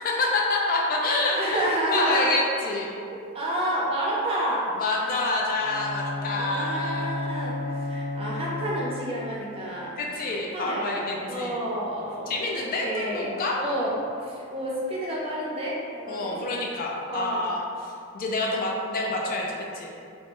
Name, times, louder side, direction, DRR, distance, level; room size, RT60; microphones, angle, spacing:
voice 1, 0.0-1.6 1.9-2.9 4.8-7.1 10.0-11.6 12.3-13.6 16.1-19.9, left 2 dB, 45° left, -2 dB, 0.3 m, -27 dB
voice 2, 1.3-2.3 3.3-4.7 6.4-9.9 10.5-12.3 12.8-16.4 17.0-17.5 18.5-18.7, right 1 dB, 25° right, -6 dB, 0.5 m, -29 dB
Bowed string instrument, 5.6-9.3, left 2 dB, 85° right, 0.4 m, -32 dB
3.4 x 2.0 x 2.5 m, 2.4 s
head